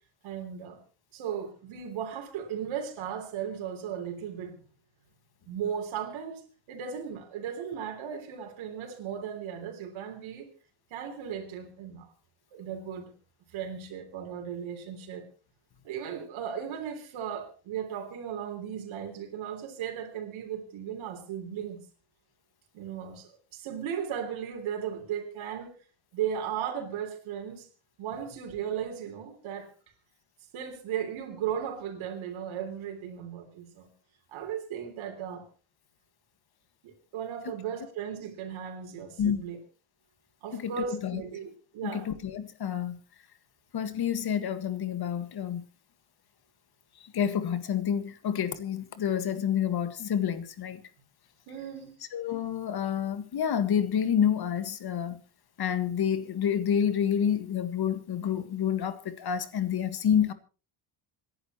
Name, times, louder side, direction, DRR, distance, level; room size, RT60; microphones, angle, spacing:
voice 1, 0.2-0.8 1.1-4.6 5.5-6.4 6.7-10.5 10.9-12.1 12.5-13.1 13.5-15.3 15.8-21.8 22.7-25.7 26.1-27.7 28.0-29.7 30.5-33.9 34.3-35.5 36.8-39.6 40.4-42.1 51.5-51.9, right 8 dB, 75° right, 3.6 m, -36 dB
voice 2, 40.5-41.2 41.8-43.0 43.7-45.6 47.0-50.8 52.1-55.2 55.6-60.3, left 8 dB, 50° left, 1.8 m, -28 dB
27.0 x 11.0 x 3.1 m
cardioid pair, 105°, 47 cm